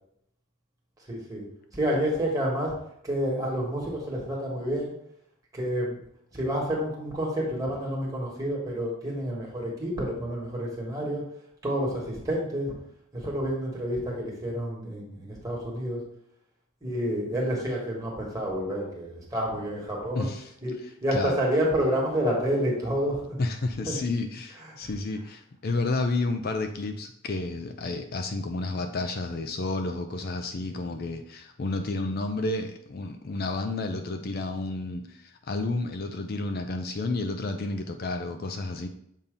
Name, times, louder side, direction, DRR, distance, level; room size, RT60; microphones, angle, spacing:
voice 1, 1.1-1.4 1.7-2.7 3.0-4.9 5.5-6.0 6.3-11.2 11.6-12.7 13.1-16.0 16.8-20.3 20.6-20.7 21.0-23.2 23.9-24.0, equal, 15° right, -3 dB, 1.6 m, -29 dB
voice 2, 20.1-20.5 21.1-21.3 23.4-38.9, left 2 dB, 45° left, 6 dB, 0.4 m, -31 dB
7.2 x 2.8 x 5.2 m, 0.74 s
head